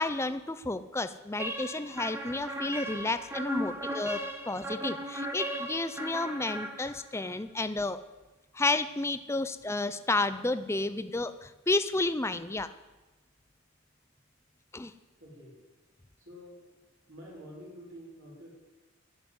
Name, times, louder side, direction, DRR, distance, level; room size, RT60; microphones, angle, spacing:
voice 1, 0.0-4.2 4.5-8.0 8.5-12.7 14.7-14.9, left 2 dB, 10° left, 12 dB, 0.5 m, -31 dB
sound 1, 1.4-7.3, equal, 10° right, 1.0 m, -37 dB
voice 2, 15.2-15.6 16.2-16.6 17.1-18.5, equal, 60° right, -4 dB, 3.7 m, -48 dB
11.5 x 7.4 x 9.6 m, 1.2 s
head